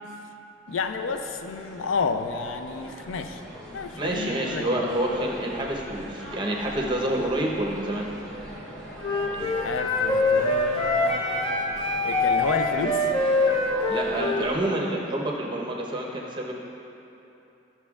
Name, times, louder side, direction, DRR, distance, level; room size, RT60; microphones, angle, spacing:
voice 1, 0.7-3.4 3.7-4.8 9.3-11.2 12.0-13.1, left 5 dB, 85° left, 7 dB, 0.4 m, -31 dB
sound 1, 0.7-14.6, equal, 5° left, 1.5 m, -42 dB
voice 2, 4.0-8.1 13.9-16.5, right 1 dB, 25° right, -2 dB, 0.8 m, -28 dB
Wind instrument woodwind instrument, 9.0-14.5, left 2 dB, 25° left, 0.6 m, -24 dB
13.0 x 6.9 x 2.4 m, 2.9 s
head